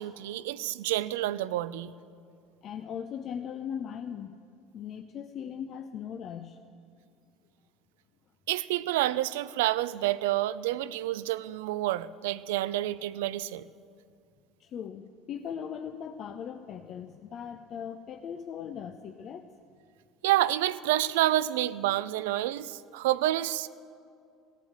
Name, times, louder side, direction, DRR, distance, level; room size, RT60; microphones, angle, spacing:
voice 1, 0.0-1.9 8.5-13.7 20.2-23.7, right 15 dB, 80° right, 17 dB, 0.4 m, -28 dB
voice 2, 2.6-4.3 4.7-6.6 14.6-19.5, left 8 dB, 50° left, 7 dB, 0.6 m, -39 dB
17.0 x 8.3 x 7.9 m, 2.4 s
hypercardioid pair, 75°, 0 cm